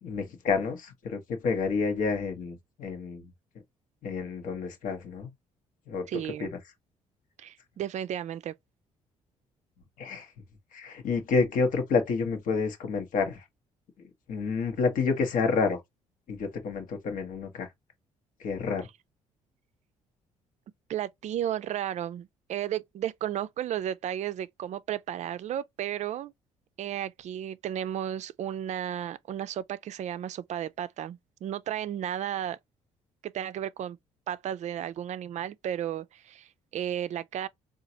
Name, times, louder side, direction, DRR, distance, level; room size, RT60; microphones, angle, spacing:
voice 1, 0.0-3.3 4.0-5.3 5.9-6.1 6.4-6.5 10.0-10.3 10.7-13.4 14.3-15.8 16.3-17.7 18.4-18.9, left 4 dB, 70° left, 1.0 m, -29 dB
voice 2, 6.1-6.5 7.4-8.5 20.9-26.3 26.8-32.6 33.2-34.0 34.3-37.5, right 10 dB, 55° right, 0.4 m, -33 dB
3.8 x 2.4 x 2.7 m
supercardioid pair, 60°, 14 cm